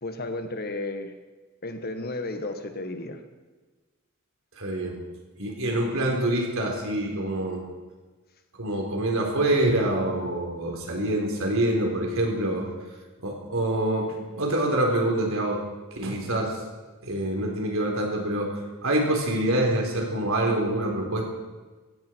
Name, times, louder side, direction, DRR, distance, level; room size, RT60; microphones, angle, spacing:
voice 1, 0.0-1.1 1.6-3.2, left 2 dB, 45° left, 7 dB, 1.5 m, -33 dB
voice 2, 4.6-5.0 5.4-7.6 8.6-12.7 13.2-15.6 15.9-16.6 17.0-21.2, right 1 dB, 70° right, 1 dB, 3.9 m, -26 dB
16.5 x 16.0 x 4.6 m, 1.3 s
head